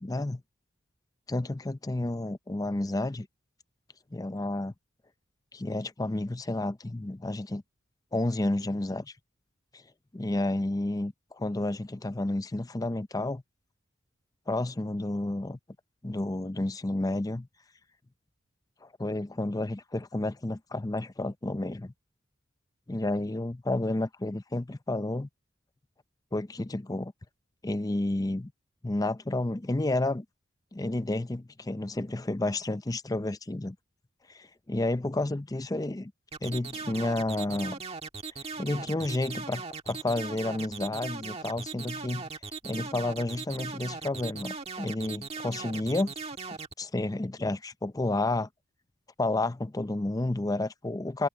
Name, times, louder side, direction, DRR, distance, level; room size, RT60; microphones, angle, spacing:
voice 1, 0.0-0.4 1.3-3.3 4.1-4.7 5.5-7.6 8.1-9.1 9.7-9.8 10.1-13.4 14.5-15.6 16.0-17.5 18.8-21.9 22.9-25.3 26.3-27.1 27.6-28.5 28.8-30.3 30.7-33.8 34.3-36.1 36.4-37.8 38.6-42.2 42.6-46.1 46.5-48.5 49.2-51.3, left 2 dB, 20° left, 0.5 m, -31 dB
sound 1, 36.3-46.7, right 4 dB, 30° right, 1.5 m, -39 dB
head